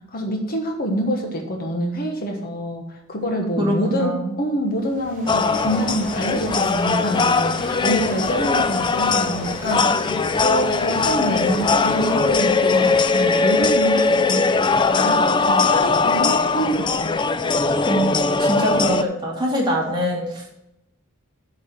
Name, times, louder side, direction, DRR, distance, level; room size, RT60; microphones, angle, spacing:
voice 1, 0.1-14.5 14.9-17.2, equal, 45° left, 2 dB, 1.3 m, -26 dB
voice 2, 3.6-4.3 17.9-18.1 18.4-20.6, equal, 20° right, -3 dB, 2.4 m, -23 dB
sound 1, 4.7-13.9, right 2 dB, 40° right, 3.4 m, -38 dB
sound 2, 5.3-19.0, left 4 dB, 20° left, 0.4 m, -20 dB
8.4 x 4.9 x 7.3 m, 0.84 s
head